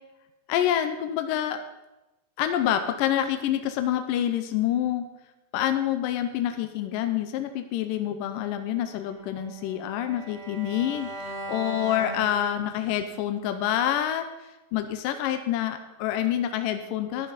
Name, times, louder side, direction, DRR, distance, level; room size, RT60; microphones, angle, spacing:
voice 1, 0.5-1.6 2.4-5.0 5.5-14.3 14.7-17.3, left 11 dB, 85° left, 8 dB, 2.0 m, -27 dB
Bowed string instrument, 8.7-12.9, right 1 dB, 55° right, 5.5 m, -39 dB
13.0 x 10.0 x 4.1 m, 0.98 s
omnidirectional pair, 4.7 m